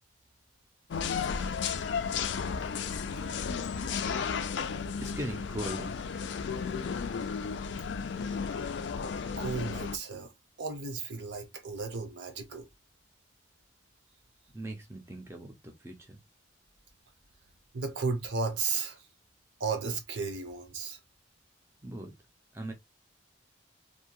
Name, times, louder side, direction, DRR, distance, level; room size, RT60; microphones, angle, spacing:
sound 1, 0.9-10.0, left 6 dB, 65° left, 0.3 m, -33 dB
voice 1, 5.0-5.9 14.5-16.2 21.8-22.1 22.5-22.7, right 1 dB, 15° right, 0.4 m, -39 dB
voice 2, 9.4-10.3 10.6-12.7 17.7-19.0 19.6-21.0, right 4 dB, 65° right, 0.7 m, -34 dB
2.7 x 2.2 x 2.8 m
head